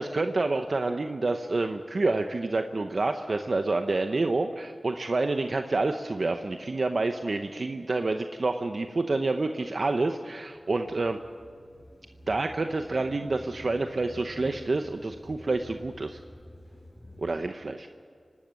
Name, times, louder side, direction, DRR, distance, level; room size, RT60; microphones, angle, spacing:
voice 1, 0.0-11.2 12.3-16.2 17.2-17.9, right 3 dB, 65° right, 6 dB, 0.8 m, -28 dB
sound 1, 10.3-17.4, left 1 dB, 10° left, 7.3 m, -49 dB
27.0 x 12.5 x 8.2 m, 2.1 s
wide cardioid pair, 50°, 0 cm